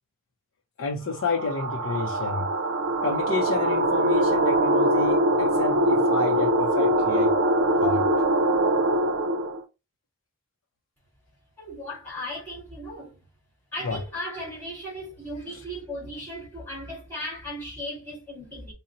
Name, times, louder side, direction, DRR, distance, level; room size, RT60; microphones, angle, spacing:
voice 1, 0.8-2.5 3.0-7.3 7.7-8.0 13.8-14.0, left 4 dB, 85° left, 0.5 m, -29 dB
sound 1, 1.2-9.6, right 1 dB, 70° right, 0.5 m, -23 dB
voice 2, 11.6-13.2 13.7-18.7, equal, 10° left, 1.7 m, -36 dB
3.8 x 2.1 x 4.0 m
head